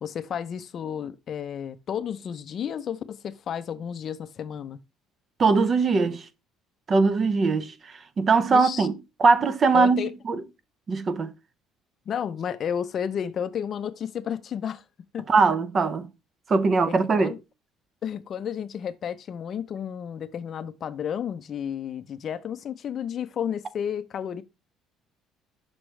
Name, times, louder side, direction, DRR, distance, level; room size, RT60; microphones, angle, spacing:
voice 1, 0.0-4.8 8.5-8.9 9.7-10.1 12.1-14.8 15.1-15.2 16.9-17.4 18.0-24.4, left 8 dB, 40° left, 0.5 m, -32 dB
voice 2, 5.4-6.3 6.9-8.9 9.2-10.4 10.9-11.3 15.3-16.1 16.5-17.3, right 4 dB, 30° right, 0.6 m, -21 dB
6.2 x 6.1 x 3.2 m
cardioid pair, 150°, 0 cm